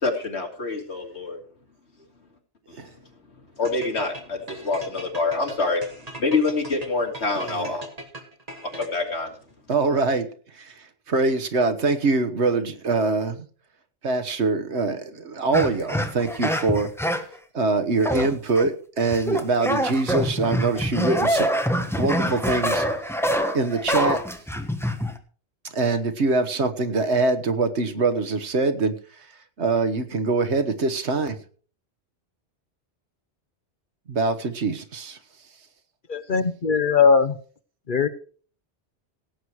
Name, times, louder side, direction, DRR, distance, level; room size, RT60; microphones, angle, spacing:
voice 1, 0.0-1.4 3.6-5.8 6.2-7.9 8.8-9.3, left 3 dB, 75° left, 2.9 m, -26 dB
sound 1, 3.6-9.2, right 1 dB, 35° right, 2.1 m, -40 dB
voice 2, 7.3-7.7 9.7-10.3 10.6-10.7 11.1-13.5 14.0-16.9 17.5-21.5 22.0-22.8 23.5-24.3 25.7-28.9 29.6-31.4 34.1-35.2, right 3 dB, 75° right, 1.6 m, -23 dB
sound 2, 15.5-17.4 18.0-18.7 19.0-25.2, equal, ahead, 1.2 m, -25 dB
voice 3, 36.1-37.4 37.9-38.1, left 5 dB, 50° left, 1.0 m, -19 dB
17.0 x 8.1 x 4.7 m
omnidirectional pair, 1.1 m